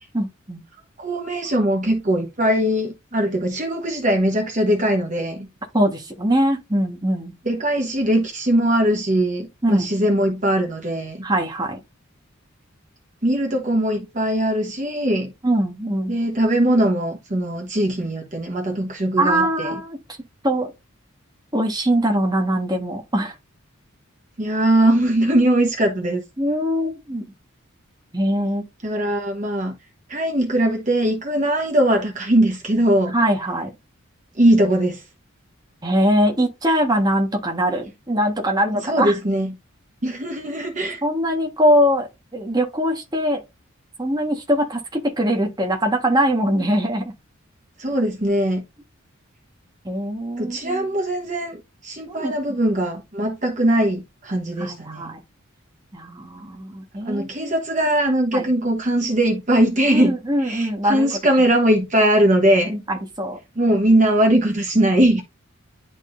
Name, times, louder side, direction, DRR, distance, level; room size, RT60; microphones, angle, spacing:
voice 1, 0.1-0.6 5.7-7.3 9.6-9.9 11.2-11.8 15.4-16.2 19.2-20.0 20.4-20.7 21.5-23.3 26.4-27.3 28.1-28.7 33.1-33.7 35.8-39.1 41.0-43.4 44.0-47.1 49.8-50.9 52.1-52.3 54.6-55.2 55.9-57.5 58.3-58.5 59.9-61.2 62.6-63.4, equal, 20° right, 1.4 m, -22 dB
voice 2, 1.0-5.5 7.5-11.3 13.2-15.3 16.1-19.7 24.4-26.2 28.8-29.7 30.1-33.2 34.4-35.0 38.8-39.5 40.0-41.0 47.8-48.6 50.4-55.1 57.0-62.8 63.6-65.2, right 1 dB, 35° right, 1.1 m, -20 dB
10.5 x 3.8 x 2.6 m
head